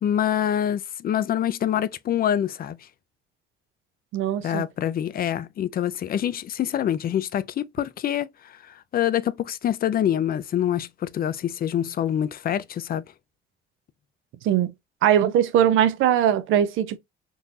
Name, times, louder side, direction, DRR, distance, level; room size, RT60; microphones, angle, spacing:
voice 1, 0.0-2.8 4.4-8.3 8.9-13.0, left 10 dB, 50° left, 0.4 m, -25 dB
voice 2, 4.1-4.6 14.4-14.7 15.0-17.0, right 10 dB, 85° right, 0.5 m, -20 dB
3.8 x 2.5 x 2.7 m
cardioid pair, 90°, 20 cm